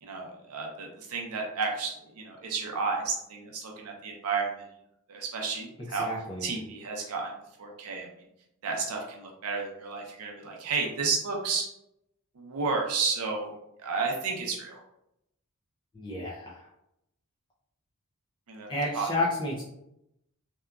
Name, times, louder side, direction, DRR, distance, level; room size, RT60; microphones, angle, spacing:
voice 1, 0.0-4.7 5.1-6.1 6.4-7.3 7.6-8.1 8.6-11.7 12.4-13.5 13.8-14.8 18.5-18.7 18.9-19.1, right 4 dB, 75° right, 0 dB, 0.5 m, -32 dB
voice 2, 6.0-6.5 15.9-16.6 18.7-19.6, left 2 dB, 20° left, -5 dB, 0.3 m, -31 dB
2.7 x 2.3 x 2.2 m, 0.81 s
head